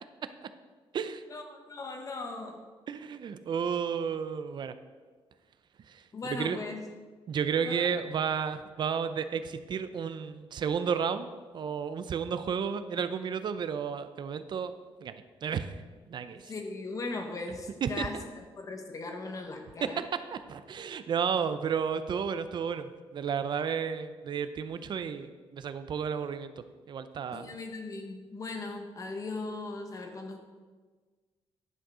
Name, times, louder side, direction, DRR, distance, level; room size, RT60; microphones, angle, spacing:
voice 1, 1.3-2.6 6.1-6.8 7.6-7.9 16.5-20.0 27.3-30.4, left 3 dB, 35° left, 4 dB, 1.0 m, -38 dB
voice 2, 2.9-4.7 5.9-6.0 6.3-6.6 7.3-14.7 15.0-15.7 16.1-16.5 17.8-18.2 19.8-26.5 26.9-27.5, right 7 dB, 50° right, 11 dB, 0.5 m, -32 dB
10.5 x 6.3 x 4.9 m, 1.4 s
wide cardioid pair, 155°, 10 cm